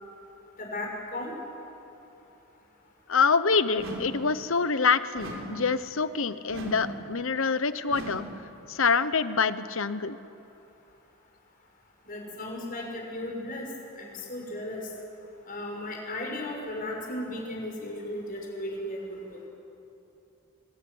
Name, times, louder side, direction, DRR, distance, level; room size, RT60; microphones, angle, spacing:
voice 1, 0.6-1.4 12.0-13.7 14.0-14.9 15.5-19.4, left 1 dB, 40° left, -1 dB, 6.2 m, -35 dB
voice 2, 3.1-8.2 8.7-10.2, left 5 dB, 65° left, 13 dB, 1.0 m, -26 dB
sound 1, 3.8-4.3 5.2-5.7 6.5-7.0 7.9-8.4, right 1 dB, 65° right, 4.3 m, -38 dB
26.0 x 20.5 x 9.6 m, 2.9 s
head